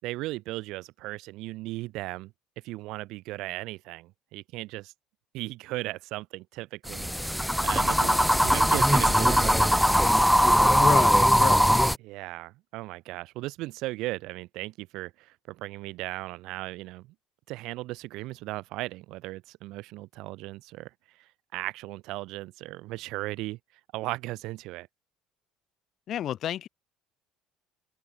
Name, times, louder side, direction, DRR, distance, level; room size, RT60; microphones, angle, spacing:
voice 1, 0.0-2.3 2.6-4.9 5.3-7.1 7.6-9.8 12.0-17.1 17.5-20.9 21.5-23.6 23.9-24.9, right 19 dB, 70° right, 4.0 m, -36 dB
sound 1, 6.9-12.0, equal, ahead, 1.0 m, -21 dB
voice 2, 10.8-11.8 26.1-26.7, left 11 dB, 55° left, 1.3 m, -31 dB
supercardioid pair, 80°, 0 cm